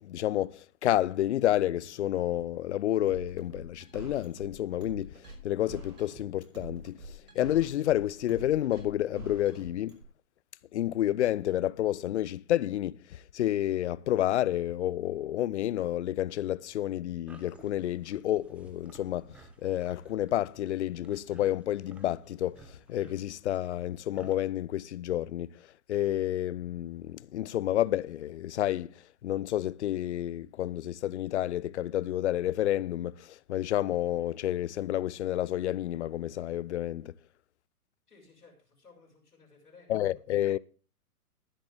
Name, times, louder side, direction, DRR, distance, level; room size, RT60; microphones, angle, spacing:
voice 1, 0.0-5.2 5.4-7.0 7.3-10.0 10.7-19.3 19.6-25.5 25.9-28.9 29.2-37.1 39.9-40.6, left 13 dB, 50° left, 0.5 m, -30 dB
sound 1, 1.6-8.3, left 2 dB, 30° left, 3.9 m, -61 dB
sound 2, 3.1-10.0, right 1 dB, 80° right, 6.1 m, -45 dB
sound 3, 17.3-24.3, right 2 dB, 5° right, 0.5 m, -56 dB
voice 2, 38.1-40.2, left 4 dB, 85° left, 6.8 m, -58 dB
21.0 x 7.6 x 3.5 m
hypercardioid pair, 130°, 45 cm